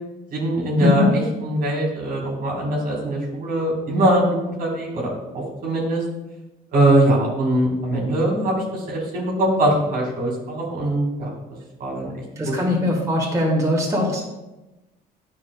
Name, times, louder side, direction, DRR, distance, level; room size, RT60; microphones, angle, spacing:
voice 1, 0.3-6.0 6.7-11.3 11.8-12.6, right 1 dB, 60° right, -2 dB, 2.0 m, -22 dB
voice 2, 12.4-14.2, left 1 dB, 20° right, -4 dB, 1.9 m, -21 dB
9.5 x 5.5 x 2.3 m, 1.0 s
cardioid pair, 110°, 17 cm